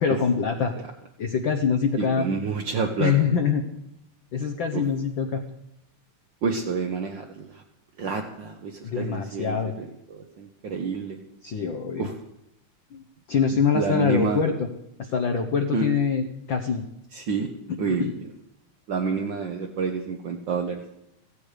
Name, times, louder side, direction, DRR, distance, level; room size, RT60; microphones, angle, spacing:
voice 1, 0.0-0.7 1.2-2.3 3.0-3.7 4.3-5.4 8.8-9.7 11.4-12.1 12.9-14.7 15.0-16.8 17.7-18.1, left 6 dB, 65° left, 6 dB, 1.2 m, -24 dB
voice 2, 2.0-3.1 4.7-4.8 6.4-7.6 8.0-11.2 12.0-12.1 13.7-14.4 15.7-15.9 17.1-17.5 17.8-18.0 18.9-20.8, right 5 dB, 60° right, 2 dB, 1.2 m, -28 dB
15.5 x 15.5 x 5.1 m, 0.82 s
omnidirectional pair, 3.5 m